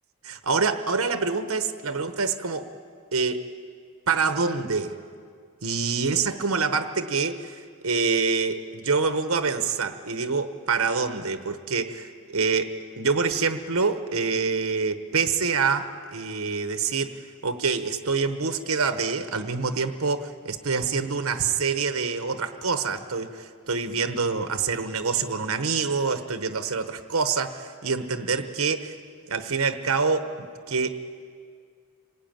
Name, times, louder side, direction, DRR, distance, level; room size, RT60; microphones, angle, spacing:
voice 1, 0.2-2.7 3.1-3.4 4.1-5.0 5.6-28.9 29.3-30.3 30.7-31.0, right 4 dB, 75° right, 9 dB, 1.1 m, -26 dB
26.5 x 18.5 x 9.0 m, 2.1 s
head